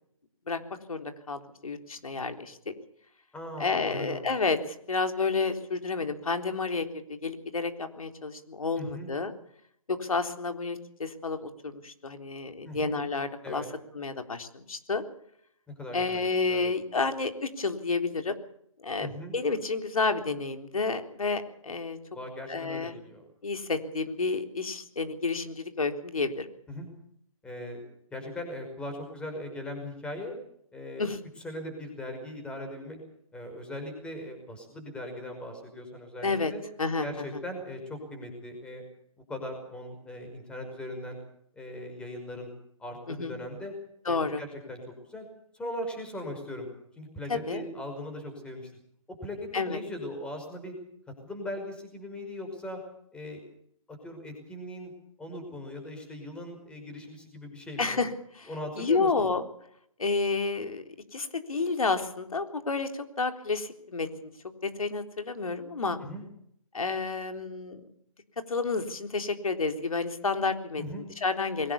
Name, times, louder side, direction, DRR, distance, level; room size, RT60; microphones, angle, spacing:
voice 1, 0.5-2.6 3.6-9.3 9.9-13.6 13.9-15.0 15.9-18.4 18.8-22.0 22.5-22.9 23.4-26.5 31.0-31.2 36.2-36.5 36.8-37.4 43.1-43.3 44.1-44.4 47.3-47.6 49.5-49.8 57.8-58.5 58.8-59.5 60.0-60.8 61.1-64.3 64.6-66.0 66.7-67.8 68.5-71.7, left 4 dB, 75° left, 7 dB, 3.8 m, -30 dB
voice 2, 3.3-4.3 8.8-9.1 12.6-12.9 13.4-13.7 15.8-16.7 19.0-19.4 22.1-23.3 26.7-26.9 27.4-27.8 28.1-30.3 30.7-31.1 31.4-33.0 33.3-36.6 37.0-38.8 39.3-41.2 41.5-42.5 42.8-43.7 44.1-44.8 45.1-45.3 45.5-46.7 47.0-48.7 49.1-50.8 51.2-52.8 53.1-53.4 53.9-54.9 55.2-58.0 58.5-59.3 66.0-66.2 70.8-71.1, left 1 dB, 5° left, 4 dB, 5.6 m, -39 dB
22.0 x 18.5 x 7.0 m, 0.69 s
hypercardioid pair, 150°, 18 cm